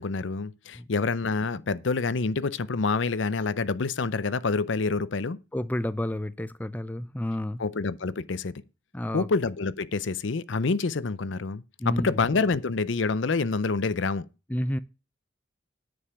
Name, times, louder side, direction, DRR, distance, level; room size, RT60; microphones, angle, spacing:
voice 1, 0.0-5.4 7.6-8.6 9.1-14.3, left 4 dB, 70° left, 0.6 m, -27 dB
voice 2, 5.5-7.6 8.9-9.3 11.8-12.2 14.5-14.8, left 1 dB, 10° left, 0.4 m, -30 dB
9.9 x 5.4 x 6.8 m
head